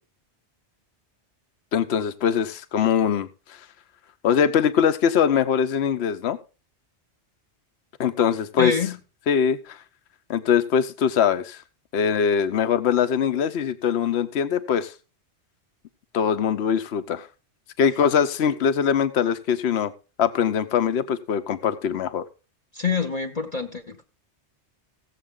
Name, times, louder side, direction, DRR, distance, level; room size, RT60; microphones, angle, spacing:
voice 1, 1.7-3.6 4.2-6.4 8.0-8.8 9.3-9.8 10.3-11.6 11.9-14.9 16.1-17.3 17.8-19.9 20.2-22.2, left 8 dB, 70° left, 1.0 m, -22 dB
voice 2, 8.6-9.0 22.7-24.0, left 5 dB, 40° left, 1.0 m, -26 dB
16.5 x 7.5 x 3.7 m
omnidirectional pair, 1.1 m